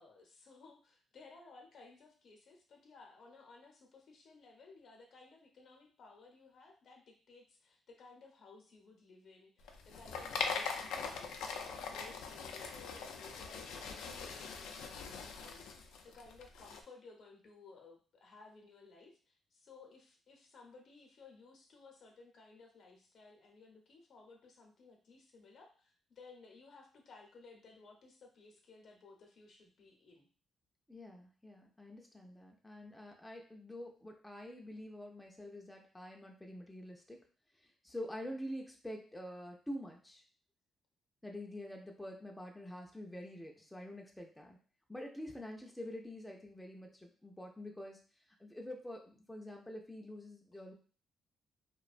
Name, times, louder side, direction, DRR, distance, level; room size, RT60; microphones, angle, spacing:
voice 1, 0.0-30.3 50.5-50.6, left 4 dB, 60° left, 2 dB, 0.7 m, -58 dB
sound 1, 9.6-16.8, left 5 dB, 85° left, 0.3 m, -42 dB
voice 2, 30.9-37.2 37.6-40.2 41.2-44.6 44.9-48.0 48.4-50.7, left 1 dB, 5° left, 1 dB, 0.4 m, -47 dB
2.4 x 2.1 x 2.4 m, 0.40 s
cardioid pair, 90°, 0 cm